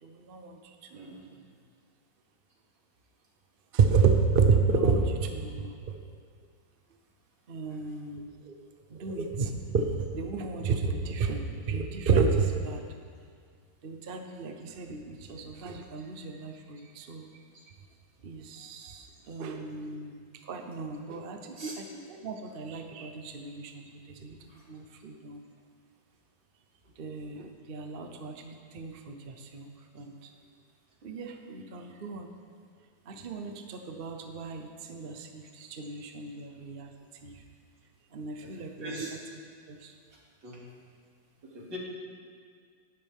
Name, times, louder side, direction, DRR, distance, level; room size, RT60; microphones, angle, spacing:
voice 1, 0.0-1.2 3.7-6.0 7.5-8.5 8.9-12.8 13.8-17.3 18.2-24.4 24.7-25.4 27.0-30.3 31.0-32.3 33.1-36.9 37.2-37.4 38.1-39.1 39.7-40.0, right 5 dB, 45° right, 4 dB, 0.7 m, -31 dB
voice 2, 0.9-1.3 21.6-21.8 24.5-24.6 38.5-39.1 40.4-40.6 41.4-41.8, right 1 dB, 65° right, -4 dB, 3.2 m, -41 dB
17.5 x 12.0 x 3.6 m, 2.1 s
omnidirectional pair, 2.1 m